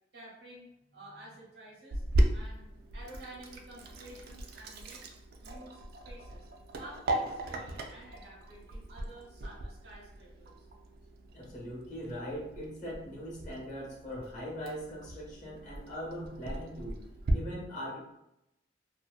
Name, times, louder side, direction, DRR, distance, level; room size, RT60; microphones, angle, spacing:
voice 1, 0.1-2.0 2.3-5.1 5.4-6.5 6.7-10.7, right 1 dB, 85° right, -6 dB, 0.9 m, -51 dB
Sink (filling or washing), 1.9-17.3, right 1 dB, 60° right, 0.3 m, -37 dB
voice 2, 11.3-17.0 17.3-18.0, equal, 45° left, -3 dB, 0.9 m, -40 dB
2.6 x 2.1 x 2.4 m, 0.84 s
head